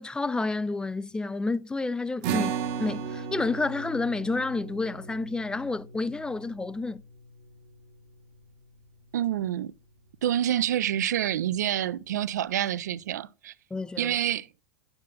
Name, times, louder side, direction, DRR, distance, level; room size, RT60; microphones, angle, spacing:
voice 1, 0.0-7.0 13.7-14.2, left 3 dB, 10° left, 0.3 m, -30 dB
sound 1, 2.2-8.9, right 7 dB, 55° right, 0.9 m, -36 dB
voice 2, 9.1-9.7 10.2-13.5 14.0-14.5, right 11 dB, 70° right, 0.4 m, -27 dB
9.6 x 7.3 x 2.3 m
figure-of-eight pair, 85°, 10 cm